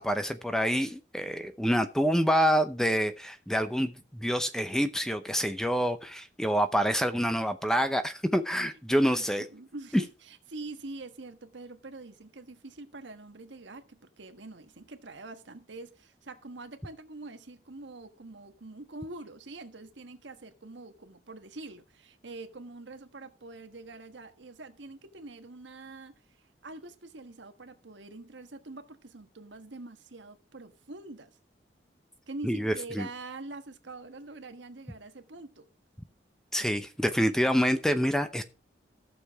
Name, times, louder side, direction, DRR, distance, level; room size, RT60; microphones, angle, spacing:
voice 1, 0.0-9.5 9.9-10.0 32.4-33.1 36.5-38.4, equal, 5° left, 0.7 m, -27 dB
voice 2, 9.0-26.1 26.6-31.3 32.3-35.7, right 2 dB, 80° right, 1.4 m, -45 dB
14.5 x 6.9 x 4.7 m
head